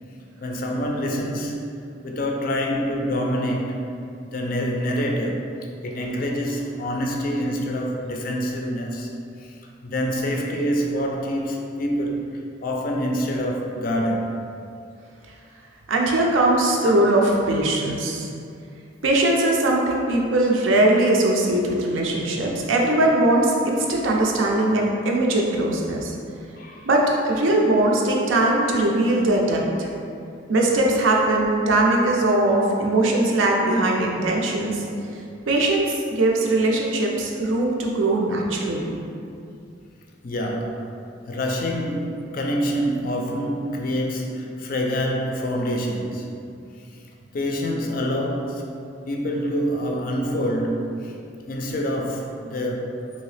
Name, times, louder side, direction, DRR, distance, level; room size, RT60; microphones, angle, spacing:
voice 1, 0.4-3.8 4.3-5.5 5.8-9.1 9.4-9.5 9.8-14.4 26.6-26.9 40.2-41.0 41.3-46.4 46.9-47.0 47.3-48.8 49.1-51.2 51.5-53.1, equal, 45° left, 0 dB, 0.3 m, -26 dB
voice 2, 15.9-18.3 19.0-26.1 26.8-29.9 30.5-34.8 35.5-38.9, right 2 dB, 80° right, -1 dB, 0.5 m, -20 dB
3.0 x 2.8 x 3.2 m, 2.5 s
head